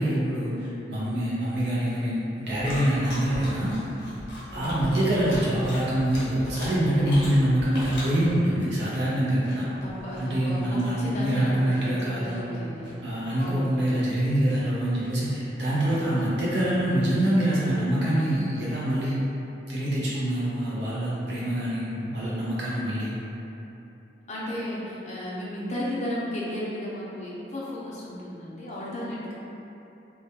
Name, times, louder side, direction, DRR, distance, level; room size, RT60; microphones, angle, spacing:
voice 1, 0.0-3.8 4.5-9.6 10.2-12.4 13.0-19.2 19.7-23.1, right 1 dB, 75° right, -8 dB, 0.5 m, -25 dB
sound 1, 1.5-18.4, left 1 dB, 70° left, 0.8 m, -41 dB
voice 2, 4.5-5.0 9.6-13.1 13.4-14.0 24.3-29.3, left 1 dB, 40° left, -7 dB, 0.5 m, -34 dB
2.2 x 2.2 x 2.7 m, 2.9 s
head